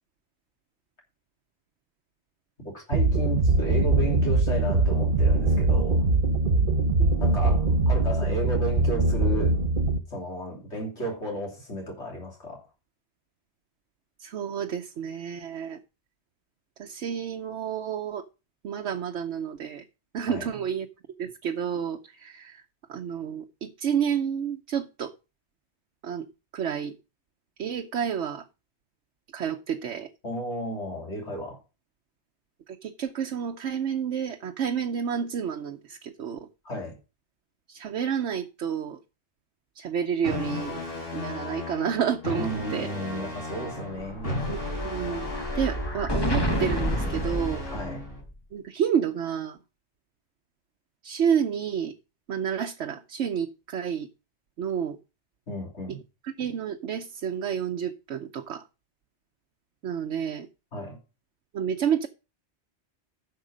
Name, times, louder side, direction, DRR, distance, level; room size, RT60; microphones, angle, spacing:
voice 1, 2.6-6.1 7.2-9.5 10.1-12.6 20.3-20.5 30.2-31.6 36.6-36.9 42.4-44.5 47.7-48.0 55.5-56.0 60.7-61.0, right 1 dB, 80° left, 3.4 m, -33 dB
sound 1, 2.9-10.0, right 3 dB, 50° right, 1.2 m, -22 dB
voice 2, 6.6-7.2 14.2-15.8 16.8-18.2 18.6-19.8 20.1-20.9 21.2-22.6 22.9-25.1 26.0-26.3 26.5-26.9 27.6-28.5 29.3-30.1 32.7-36.5 37.7-39.0 39.7-40.8 41.1-42.9 44.5-45.3 45.5-47.6 48.5-49.6 51.0-51.9 52.3-54.1 54.6-55.0 56.2-58.6 59.8-60.5 61.5-62.1, right 8 dB, 80° right, 1.1 m, -30 dB
sound 2, 40.2-48.2, left 1 dB, 55° left, 4.6 m, -35 dB
Explosion, 43.7-48.3, equal, 20° left, 1.2 m, -30 dB
10.5 x 6.6 x 5.0 m
omnidirectional pair, 1.2 m